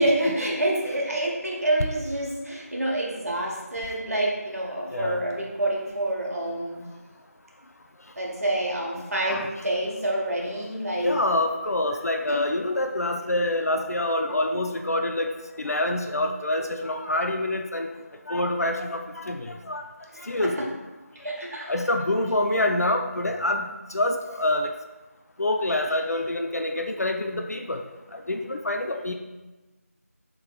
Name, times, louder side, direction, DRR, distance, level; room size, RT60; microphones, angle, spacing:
voice 1, 0.0-6.8 8.2-11.2 12.3-12.4 20.1-20.6 21.1-21.7, right 1 dB, 70° right, -3 dB, 1.3 m, -27 dB
voice 2, 4.9-5.2 9.3-9.5 11.0-15.3 15.6-17.9 18.3-19.8 20.2-20.6 21.7-23.7 23.9-24.7 25.4-27.8 28.1-29.2, left 1 dB, 75° left, 4 dB, 0.4 m, -26 dB
6.6 x 3.4 x 2.3 m, 1.1 s
figure-of-eight pair, 175°, 8 cm